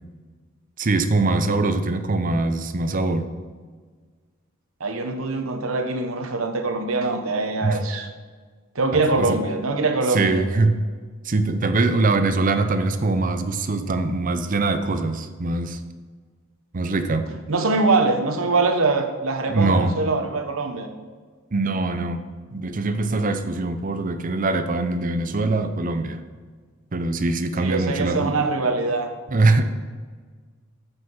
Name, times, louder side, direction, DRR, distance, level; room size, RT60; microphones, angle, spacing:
voice 1, 0.8-3.3 7.6-7.8 9.1-9.4 10.1-10.7 11.2-15.8 16.7-17.3 19.5-19.9 21.5-22.2 22.5-26.2 26.9-28.4 29.3-29.6, right 3 dB, 40° right, 8 dB, 0.6 m, -22 dB
voice 2, 4.8-8.1 8.7-10.4 17.5-20.9 27.6-29.1, right 3 dB, 85° right, 5 dB, 1.0 m, -23 dB
8.0 x 5.8 x 5.7 m, 1.5 s
head